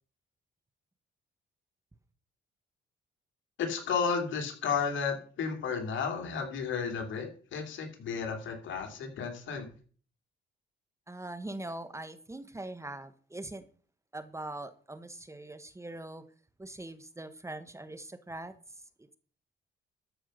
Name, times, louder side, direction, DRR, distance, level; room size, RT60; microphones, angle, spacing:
voice 1, 3.6-9.7, left 6 dB, 75° left, 5 dB, 3.0 m, -33 dB
voice 2, 11.1-13.6 14.1-16.2 16.6-18.5 19.0-19.2, right 2 dB, 15° right, 12 dB, 1.1 m, -42 dB
13.0 x 5.5 x 6.6 m, 0.43 s
cardioid pair, 90°, 20 cm